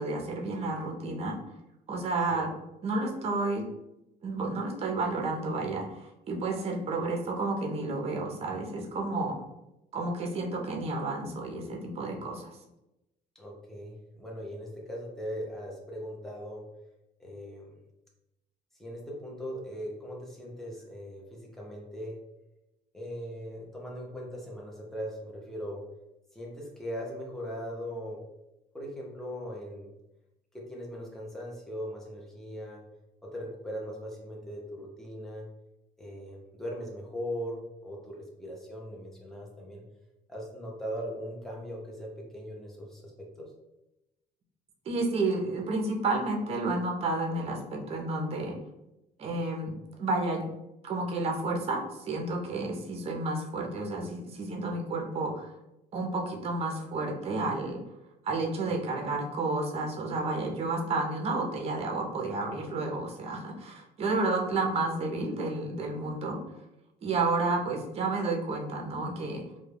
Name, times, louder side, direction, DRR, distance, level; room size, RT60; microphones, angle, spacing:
voice 1, 0.0-1.4 1.9-2.5 2.8-3.7 4.2-9.4 9.9-12.5 44.9-48.6 49.2-50.4 50.8-55.5 55.9-57.8 58.2-66.4 67.0-69.4, right 2 dB, 35° right, 1 dB, 0.5 m, -31 dB
voice 2, 13.3-16.6 17.2-17.8 18.8-22.2 22.9-25.8 26.3-28.2 28.7-29.9 30.5-32.8 33.2-35.5 36.0-37.6 37.8-39.8 40.3-42.1 42.3-43.1 43.4-43.5 58.9-59.1, equal, ahead, -3 dB, 0.6 m, -39 dB
2.2 x 2.1 x 3.3 m, 0.92 s
cardioid pair, 110°, 17 cm